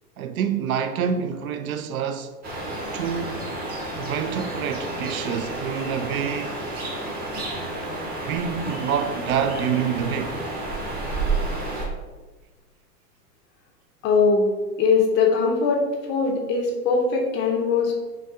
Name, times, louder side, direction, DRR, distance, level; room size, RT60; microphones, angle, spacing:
voice 1, 0.2-2.3 2.9-3.5 4.0-6.6 8.3-10.4, right 7 dB, 60° right, 0.5 m, -27 dB
sound 1, 2.4-11.9, right 2 dB, 20° right, 0.8 m, -30 dB
voice 2, 14.0-14.5 14.8-15.8 16.1-17.9, left 4 dB, 25° left, 0.6 m, -21 dB
5.5 x 2.4 x 3.5 m
hypercardioid pair, 120°, 48 cm